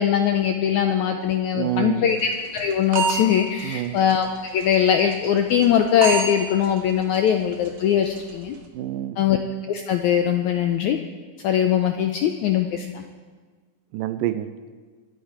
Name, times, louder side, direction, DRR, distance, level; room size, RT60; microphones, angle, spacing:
voice 1, 0.0-8.5 9.2-9.4 9.7-11.0 11.4-13.0, left 9 dB, 90° left, 5 dB, 1.7 m, -21 dB
voice 2, 1.5-2.2 3.6-4.0 8.7-9.2 13.9-14.5, right 13 dB, 80° right, 11 dB, 2.1 m, -27 dB
sound 1, 2.2-3.2 3.6-3.7 4.1-4.2 4.6-4.7 5.1-5.3 5.6-5.8 6.0-6.3 6.6-6.8 7.1-7.3 7.7-7.8 8.2-8.3, right 5 dB, 55° right, 2.7 m, -25 dB
24.0 x 11.0 x 4.9 m, 1.5 s
omnidirectional pair, 4.2 m